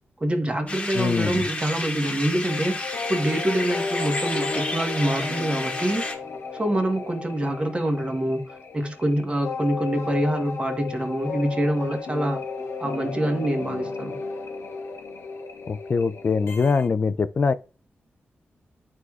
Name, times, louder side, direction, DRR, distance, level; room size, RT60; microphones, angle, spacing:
voice 1, 0.2-2.8 3.1-6.0 6.5-12.4 12.8-14.2, right 1 dB, 25° right, 1.3 m, -25 dB
sound 1, 0.7-6.1, left 2 dB, 30° left, 1.3 m, -31 dB
voice 2, 0.9-1.5 15.7-17.5, left 5 dB, 45° left, 0.4 m, -23 dB
sound 2, 2.4-16.9, left 4 dB, 85° left, 0.8 m, -34 dB
11.0 x 4.8 x 2.4 m
wide cardioid pair, 90°, 4 cm